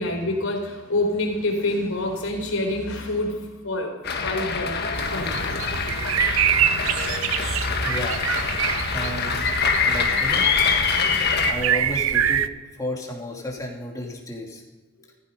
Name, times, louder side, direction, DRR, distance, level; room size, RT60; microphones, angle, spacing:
voice 1, 0.0-4.8 5.1-5.4, left 2 dB, 85° left, 2 dB, 4.0 m, -27 dB
sound 1, 4.0-11.5, left 5 dB, 50° left, 1.5 m, -24 dB
sound 2, 4.9-12.5, right 9 dB, 75° right, 0.6 m, -26 dB
voice 2, 7.8-8.2 8.9-9.5 9.8-10.5 11.4-12.5 12.8-14.6, left 1 dB, 15° left, -1 dB, 2.9 m, -32 dB
15.5 x 14.5 x 5.5 m, 1.2 s
head